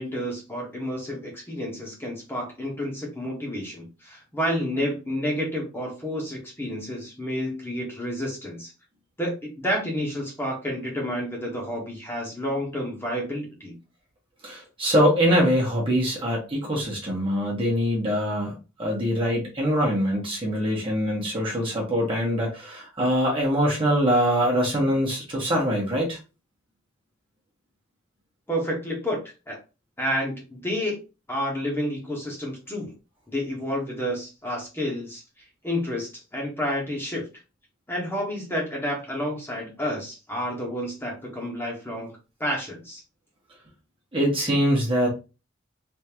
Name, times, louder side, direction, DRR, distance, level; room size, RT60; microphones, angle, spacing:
voice 1, 0.0-8.7 9.2-13.7 28.5-29.2 29.5-29.6 30.0-31.0 31.3-32.9 33.3-35.2 35.6-37.2 37.9-43.0, equal, 10° left, -2 dB, 1.4 m, -30 dB
voice 2, 14.4-18.5 18.8-26.2 44.1-45.1, equal, 25° right, -2 dB, 1.3 m, -23 dB
3.6 x 3.1 x 3.0 m, 0.29 s
head